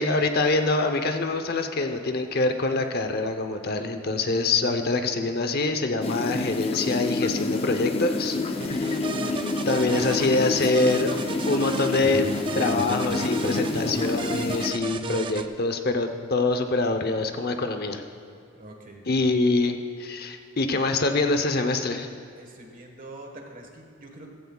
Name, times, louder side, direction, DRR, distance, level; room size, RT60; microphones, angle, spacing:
voice 1, 0.0-8.4 9.7-11.1 11.5-12.2 12.5-18.0 19.1-22.1, left 3 dB, 50° left, 6 dB, 0.8 m, -25 dB
sound 1, 6.0-14.7, left 3 dB, 30° left, 0.5 m, -28 dB
voice 2, 8.4-8.8 18.5-19.4 22.4-24.3, right 2 dB, 45° right, 2 dB, 1.5 m, -45 dB
sound 2, 8.6-15.5, right 4 dB, 25° right, 0.4 m, -35 dB
15.5 x 14.5 x 2.4 m, 2.4 s
head